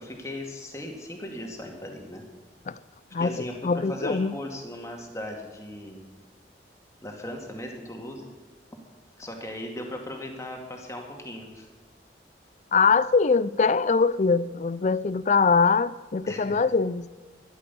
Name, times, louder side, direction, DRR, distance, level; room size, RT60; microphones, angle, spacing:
voice 1, 0.0-2.2 3.2-6.1 7.0-8.3 9.2-11.7 16.3-16.6, left 1 dB, 15° left, 2.2 m, -37 dB
voice 2, 3.1-4.3 12.7-17.1, left 4 dB, 40° left, 0.4 m, -23 dB
13.0 x 11.5 x 7.1 m
head